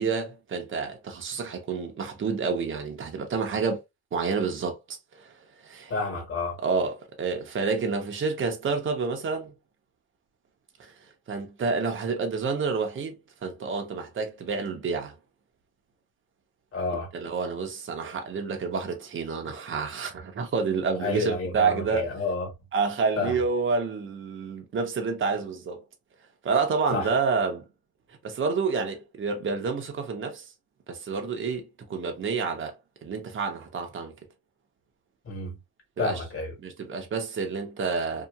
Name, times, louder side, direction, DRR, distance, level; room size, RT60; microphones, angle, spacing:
voice 1, 0.0-3.8 4.1-5.3 5.6-5.9 6.6-9.5 10.8-10.9 11.3-15.1 17.1-22.1 22.7-25.8 26.4-27.6 28.2-30.4 30.9-32.7 33.0-34.1 36.0-36.2 36.6-38.3, right 5 dB, 35° right, 0.8 m, -29 dB
voice 2, 5.9-6.6 16.7-17.1 20.9-22.5 23.2-23.4 26.9-27.1 35.2-35.6 36.0-36.5, left 3 dB, 35° left, 1.4 m, -30 dB
2.8 x 2.4 x 2.3 m
cardioid pair, 120°, 36 cm